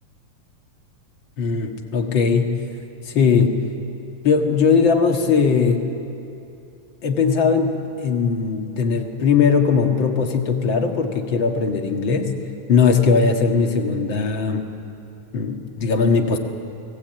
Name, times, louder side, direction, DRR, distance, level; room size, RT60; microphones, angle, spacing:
voice 1, 1.4-2.5 3.1-3.6 4.2-5.8 7.0-12.4 12.7-14.7 15.3-16.4, left 5 dB, 45° left, 3 dB, 2.0 m, -19 dB
30.0 x 21.0 x 9.0 m, 2.7 s
omnidirectional pair, 3.8 m